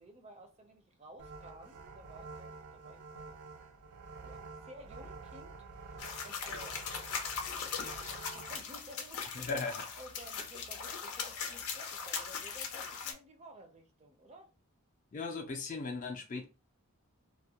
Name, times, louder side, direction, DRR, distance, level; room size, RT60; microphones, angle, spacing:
voice 1, 0.0-3.4 4.2-9.5 10.0-14.5, right 1 dB, 30° right, 0.4 m, -55 dB
sound 1, 1.2-8.6, right 4 dB, 90° right, 0.4 m, -49 dB
sound 2, 6.0-13.1, left 6 dB, 90° left, 0.6 m, -40 dB
voice 2, 9.3-9.9 15.1-16.4, left 4 dB, 35° left, 0.4 m, -37 dB
2.3 x 2.1 x 2.7 m
head